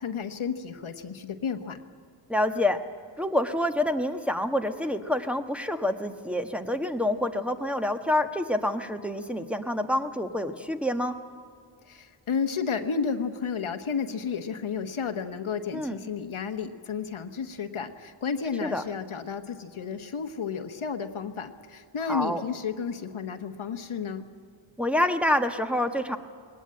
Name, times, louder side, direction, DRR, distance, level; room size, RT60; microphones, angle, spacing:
voice 1, 0.0-1.8 11.8-24.3, left 6 dB, 80° left, 6 dB, 1.3 m, -32 dB
voice 2, 2.3-2.8 3.2-11.2 15.7-16.0 18.6-18.8 22.1-22.4 24.8-26.2, left 1 dB, 5° right, 5 dB, 1.2 m, -27 dB
20.5 x 18.0 x 8.8 m, 2.2 s
wide cardioid pair, 80°, 48 cm